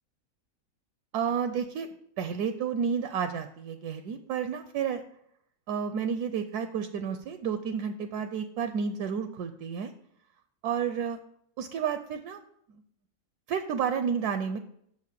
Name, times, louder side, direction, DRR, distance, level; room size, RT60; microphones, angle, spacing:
voice 1, 1.1-5.0 5.7-9.9 10.6-11.2 11.6-12.4 13.5-14.6, right 7 dB, 75° right, 9 dB, 1.1 m, -31 dB
6.4 x 5.5 x 6.7 m, 0.70 s
omnidirectional pair, 1.7 m